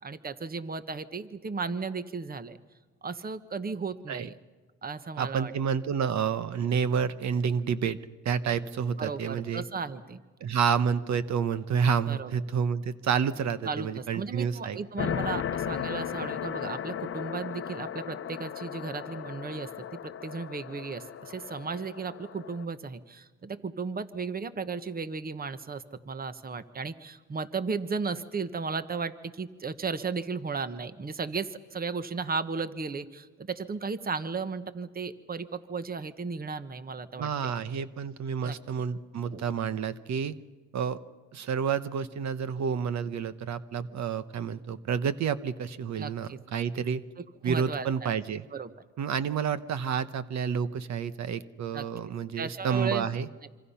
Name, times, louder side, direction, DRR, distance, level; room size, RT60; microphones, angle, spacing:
voice 1, 0.0-2.6 3.0-4.4 4.8-5.5 9.0-10.2 12.1-12.4 13.6-37.5 38.4-38.6 39.3-39.4 46.0-46.4 46.8-46.9 47.2-48.1 48.5-48.7 51.7-52.1 52.4-53.1, right 4 dB, 30° right, 12 dB, 1.2 m, -35 dB
voice 2, 5.2-8.0 8.2-9.6 10.4-14.8 37.2-40.3 40.7-41.0 41.3-47.0 47.4-48.4 49.0-53.3, right 7 dB, 65° right, 13 dB, 1.1 m, -29 dB
sound 1, 15.0-22.6, left 9 dB, 45° left, 0.8 m, -36 dB
26.0 x 26.0 x 5.7 m, 1.3 s
cardioid pair, 90°, 30 cm